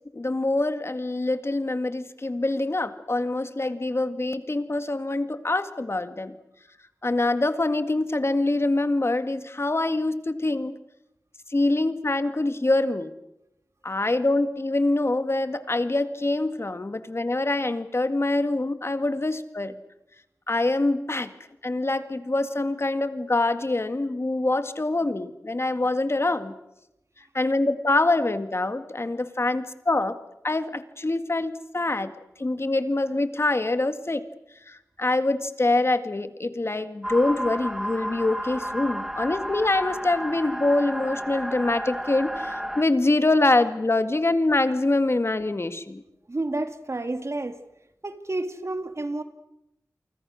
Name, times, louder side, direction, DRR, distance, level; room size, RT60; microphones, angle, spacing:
voice 1, 0.1-6.4 7.0-10.8 11.5-13.1 13.8-19.8 20.5-21.3 21.6-26.5 27.3-30.2 30.4-32.1 32.4-34.3 34.7-46.0, left 2 dB, 45° left, 10 dB, 2.0 m, -25 dB
sound 1, 37.0-42.8, equal, 5° right, 2.3 m, -32 dB
voice 2, 46.3-47.6 48.0-49.2, right 2 dB, 50° right, 8 dB, 2.3 m, -30 dB
29.0 x 24.5 x 6.5 m, 0.87 s
wide cardioid pair, 55°, 6 cm